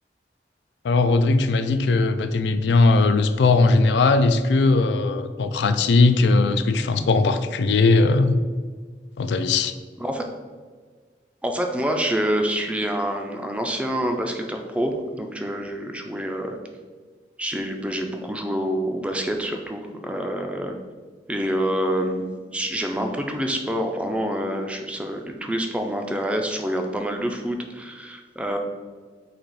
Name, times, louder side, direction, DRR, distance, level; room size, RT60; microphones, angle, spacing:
voice 1, 0.8-8.4 9.2-9.7, left 3 dB, 80° left, 9 dB, 0.3 m, -19 dB
voice 2, 11.4-16.6 17.4-20.8 21.3-28.6, equal, 5° right, 3 dB, 0.3 m, -27 dB
4.0 x 2.8 x 4.6 m, 1.5 s
head